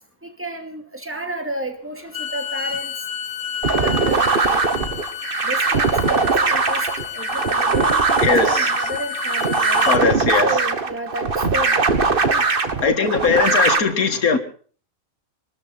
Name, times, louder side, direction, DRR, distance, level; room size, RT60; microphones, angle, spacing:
voice 1, 0.2-2.9 3.7-4.6 5.4-9.9 10.4-11.8 12.2-12.4 12.8-13.0 13.3-13.4, right 1 dB, 10° right, 5 dB, 2.5 m, -31 dB
Bowed string instrument, 2.0-10.0, left 9 dB, 60° left, 1.6 m, -31 dB
sound 1, 3.6-13.8, right 4 dB, 40° right, 1.5 m, -20 dB
voice 2, 8.2-8.7 9.9-10.5 12.8-14.4, left 5 dB, 90° left, 7 dB, 2.3 m, -19 dB
23.5 x 13.0 x 4.2 m, 0.42 s
omnidirectional pair, 1.5 m